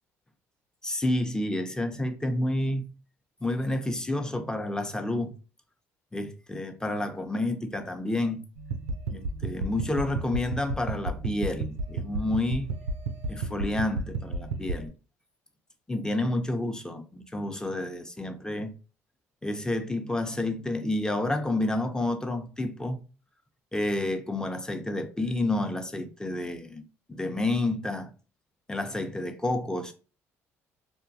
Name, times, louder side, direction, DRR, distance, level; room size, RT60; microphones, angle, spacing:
voice 1, 0.8-2.9 3.4-5.3 6.1-8.4 9.1-12.7 13.3-14.9 15.9-18.7 19.4-23.0 23.7-26.8 27.1-28.1 28.7-29.9, left 1 dB, 10° left, 0.5 m, -29 dB
sound 1, 8.6-14.9, right 3 dB, 90° right, 0.3 m, -33 dB
2.3 x 2.2 x 2.6 m
hypercardioid pair, 60°, 7 cm